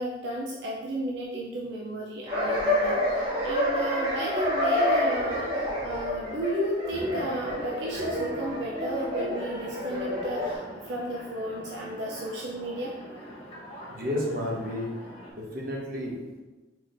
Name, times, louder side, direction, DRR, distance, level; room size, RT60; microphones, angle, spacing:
voice 1, 0.0-12.9, right 1 dB, 75° right, -2 dB, 0.5 m, -33 dB
sound 1, 2.3-10.5, left 1 dB, 35° right, 1.4 m, -28 dB
sound 2, 6.9-15.3, equal, 35° left, 0.9 m, -44 dB
voice 2, 13.9-14.9 15.3-16.4, left 1 dB, 55° right, -3 dB, 1.0 m, -32 dB
4.5 x 4.2 x 2.6 m, 1.2 s
head